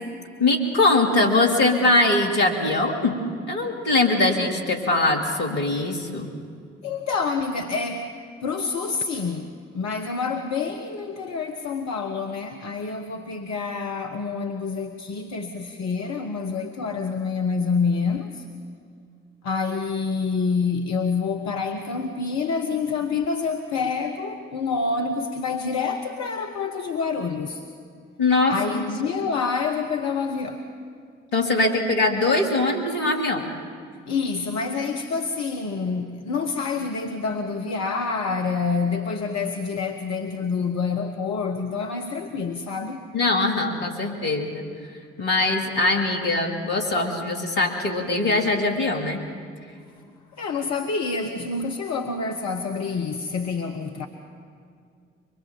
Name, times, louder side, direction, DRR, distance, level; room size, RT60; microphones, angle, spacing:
voice 1, 0.4-3.2 3.5-6.3 28.2-28.8 31.3-33.5 43.1-44.6 45.2-49.2, left 2 dB, 75° left, 2 dB, 2.7 m, -22 dB
voice 2, 6.8-8.2 8.4-18.4 19.4-27.6 28.5-30.6 34.1-43.0 50.4-54.1, left 4 dB, 60° left, 4 dB, 1.4 m, -27 dB
24.5 x 21.5 x 7.3 m, 2.2 s
figure-of-eight pair, 40°, 31 cm